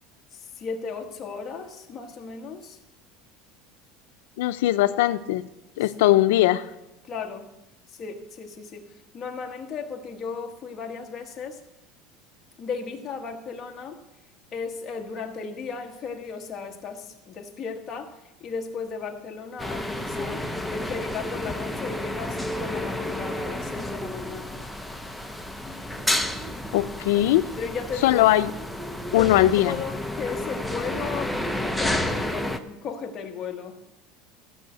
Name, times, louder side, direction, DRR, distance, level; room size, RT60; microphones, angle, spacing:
voice 1, 0.3-2.8 7.0-7.5 7.9-8.9 9.1-11.6 12.6-14.0 14.5-20.4 20.7-24.6 27.6-28.3 29.1-33.8, left 5 dB, 25° left, 2 dB, 1.3 m, -35 dB
voice 2, 4.4-5.5 5.8-6.7 26.7-27.5 28.0-28.5 29.1-29.8, left 15 dB, 90° left, 11 dB, 0.4 m, -20 dB
sound 1, 19.6-32.6, left 1 dB, ahead, 0.6 m, -31 dB
14.0 x 5.6 x 7.8 m, 0.93 s
cardioid pair, 165°, 0 cm